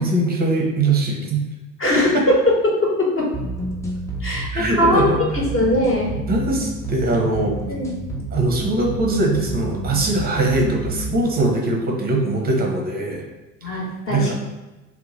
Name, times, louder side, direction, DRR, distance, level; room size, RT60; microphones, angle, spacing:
voice 1, 0.0-1.4 2.1-2.2 4.5-5.2 6.3-7.5 8.3-13.2 13.7-13.8 14.1-14.3, right 2 dB, 20° right, 0 dB, 0.8 m, -21 dB
voice 2, 1.8-2.4 2.6-3.3 4.2-6.1 7.7-7.9 13.6-14.3, left 1 dB, 30° left, -4 dB, 1.2 m, -20 dB
sound 1, 3.3-11.4, right 1 dB, 5° left, 0.4 m, -29 dB
2.8 x 2.2 x 3.9 m, 1.1 s
figure-of-eight pair, 70°, 46 cm